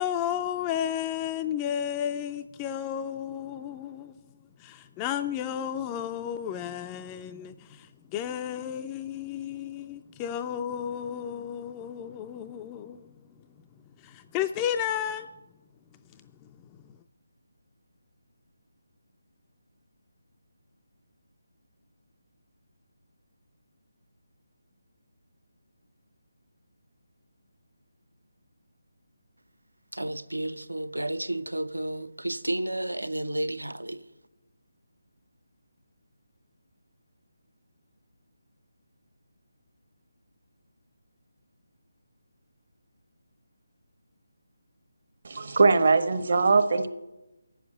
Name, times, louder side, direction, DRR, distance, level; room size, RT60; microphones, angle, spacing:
voice 1, 0.0-4.1 4.6-13.1 14.0-15.3, left 9 dB, 15° left, 0.3 m, -32 dB
voice 2, 29.9-34.1, right 1 dB, 80° right, 0.6 m, -32 dB
voice 3, 45.2-46.9, right 4 dB, 50° right, 0.9 m, -21 dB
8.9 x 7.1 x 8.7 m
figure-of-eight pair, 155°, 0 cm